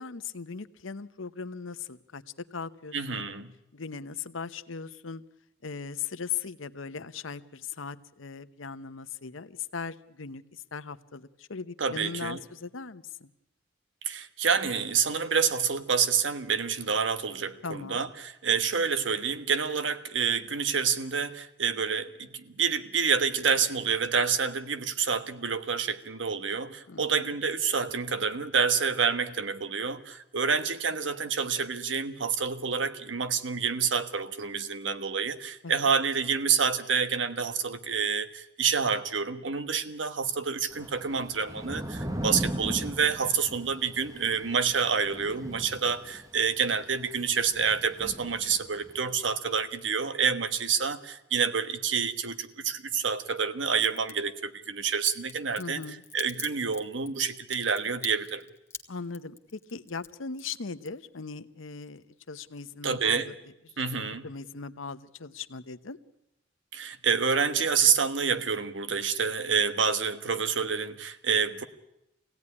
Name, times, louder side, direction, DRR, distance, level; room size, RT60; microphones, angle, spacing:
voice 1, 0.0-3.3 3.7-5.2 5.6-13.3 17.6-18.0 26.9-27.3 35.6-35.9 55.6-56.0 58.9-63.3 63.9-66.0, left 5 dB, 85° left, 12 dB, 0.9 m, -39 dB
voice 2, 2.9-3.5 11.8-12.4 14.0-55.8 56.1-58.4 62.8-63.3 63.8-64.3 66.7-71.6, right 6 dB, 70° right, 10 dB, 1.3 m, -28 dB
Thunder / Rain, 40.7-49.1, right 1 dB, 20° right, 1.1 m, -38 dB
Crack, 53.7-54.1 55.0-61.3 61.6-62.3 62.6-62.7, left 5 dB, 15° left, 1.3 m, -43 dB
24.5 x 17.0 x 9.8 m, 0.87 s
head